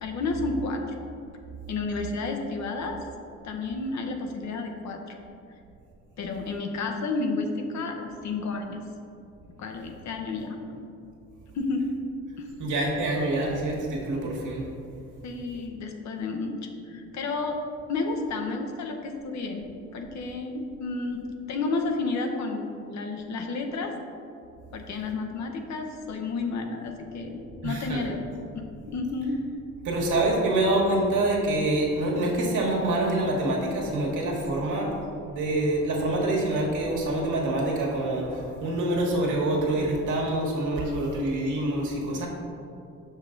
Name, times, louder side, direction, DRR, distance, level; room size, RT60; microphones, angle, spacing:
voice 1, 0.0-1.0 1.7-3.0 3.4-5.1 6.2-8.8 9.6-10.6 11.5-12.0 12.4-12.5 15.2-17.6 17.9-19.6 19.9-21.2 21.5-23.9 24.7-28.2 28.5-29.4 34.6-34.7, left 3 dB, 65° left, 4 dB, 0.9 m, -31 dB
voice 2, 12.6-14.6 27.6-28.0 29.8-34.9 35.2-42.3, right 1 dB, 75° right, -2 dB, 1.5 m, -26 dB
6.1 x 5.3 x 3.8 m, 2.6 s
cardioid pair, 90°, 30 cm